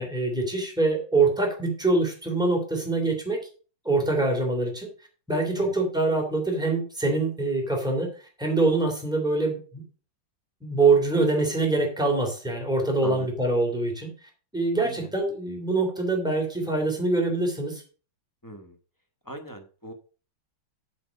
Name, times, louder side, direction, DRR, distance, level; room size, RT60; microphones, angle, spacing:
voice 1, 0.0-3.4 3.8-4.9 5.3-8.1 8.4-9.8 10.6-14.1 14.5-17.8, right 3 dB, ahead, 1 dB, 3.0 m, -24 dB
voice 2, 14.8-15.1 18.4-18.8 19.2-19.9, right 1 dB, 15° left, 5 dB, 0.8 m, -40 dB
7.8 x 6.5 x 5.3 m, 0.38 s
omnidirectional pair, 2.1 m